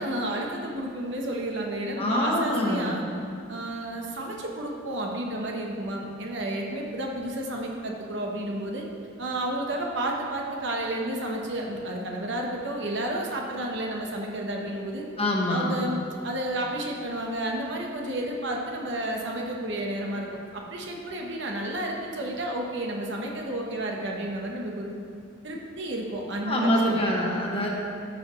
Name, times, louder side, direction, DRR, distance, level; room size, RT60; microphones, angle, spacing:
voice 1, 0.0-3.0 3.5-8.8 9.2-15.0 15.5-24.9 25.4-26.9, right 1 dB, 60° right, 0 dB, 1.1 m, -31 dB
voice 2, 2.0-3.0 15.2-15.7 26.5-27.7, left 1 dB, 30° left, -2 dB, 1.3 m, -25 dB
13.5 x 6.8 x 3.2 m, 2.5 s
head